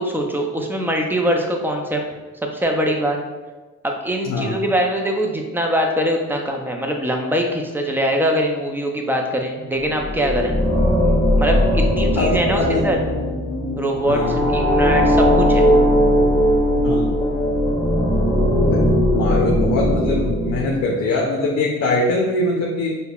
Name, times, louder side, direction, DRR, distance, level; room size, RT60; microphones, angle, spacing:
voice 1, 0.0-2.0 2.5-3.2 3.8-10.5 11.4-13.0 13.8-15.7, equal, 5° right, 2 dB, 0.4 m, -22 dB
voice 2, 4.2-4.6 12.2-12.8 14.1-14.4 16.7-17.2 18.7-22.9, left 2 dB, 65° left, -1 dB, 0.6 m, -22 dB
sound 1, 9.9-21.1, equal, 20° left, 1.0 m, -18 dB
5.1 x 2.2 x 2.3 m, 1.2 s
cardioid pair, 90°, 30 cm